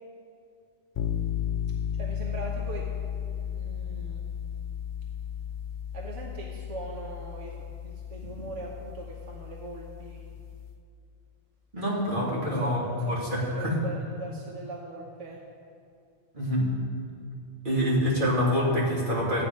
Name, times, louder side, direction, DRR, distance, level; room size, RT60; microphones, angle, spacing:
sound 1, 0.9-10.8, left 9 dB, 50° left, 0.6 m, -34 dB
voice 1, 1.9-2.9 3.1-4.2 5.9-10.2 12.3-15.4, right 2 dB, 80° right, -2 dB, 1.5 m, -41 dB
voice 2, 11.7-12.8 13.1-13.8 16.3-16.7 17.6-19.4, equal, 40° right, -6 dB, 2.9 m, -26 dB
14.5 x 9.3 x 5.2 m, 2.4 s
omnidirectional pair, 1.3 m